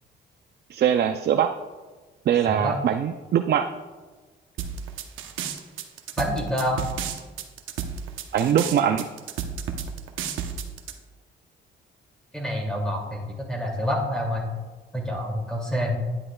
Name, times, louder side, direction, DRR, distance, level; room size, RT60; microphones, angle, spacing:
voice 1, 0.7-1.5 2.3-3.7 8.3-9.1, right 9 dB, 55° right, 6 dB, 0.5 m, -22 dB
sound 1, 4.6-10.9, right 7 dB, 85° right, 0.9 m, -32 dB
voice 2, 6.2-6.8 12.3-14.5 14.9-15.9, equal, 5° left, -1 dB, 2.5 m, -27 dB
10.5 x 10.0 x 2.3 m, 1.3 s
cardioid pair, 90°, 20 cm